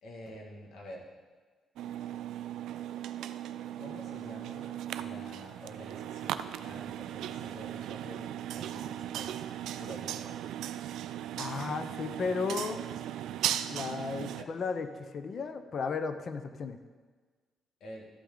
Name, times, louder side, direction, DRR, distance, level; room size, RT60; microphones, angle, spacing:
voice 1, 0.0-1.0 3.8-10.4 14.3-14.5 17.8-18.1, equal, 75° left, -1 dB, 2.2 m, -48 dB
sound 1, 1.8-14.4, right 11 dB, 85° right, 0.4 m, -37 dB
voice 2, 11.3-12.8 13.7-14.9 15.1-16.8, left 5 dB, 50° left, 9 dB, 0.8 m, -34 dB
13.0 x 8.3 x 4.0 m, 1.4 s
cardioid pair, 90°, 0 cm